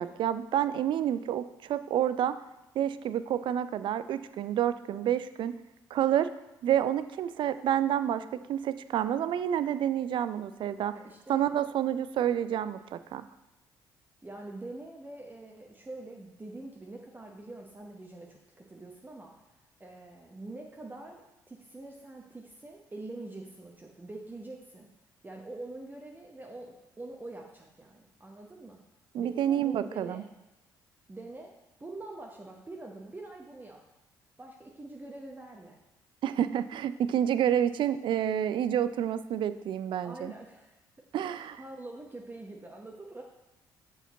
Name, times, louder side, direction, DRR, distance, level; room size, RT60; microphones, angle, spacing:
voice 1, 0.0-2.4 2.8-5.5 5.9-6.3 6.6-11.0 11.3-13.2 29.1-30.2 36.2-40.3 41.1-41.6, right 10 dB, 50° right, 13 dB, 0.4 m, -29 dB
voice 2, 10.9-11.4 14.2-19.5 19.8-24.9 25.2-28.8 29.2-30.3 31.1-31.5 31.8-33.8 34.4-35.8 40.0-40.8 41.3-43.2, right 2 dB, 20° right, 0 dB, 0.8 m, -45 dB
7.0 x 4.7 x 4.0 m, 0.98 s
hypercardioid pair, 50°, 10 cm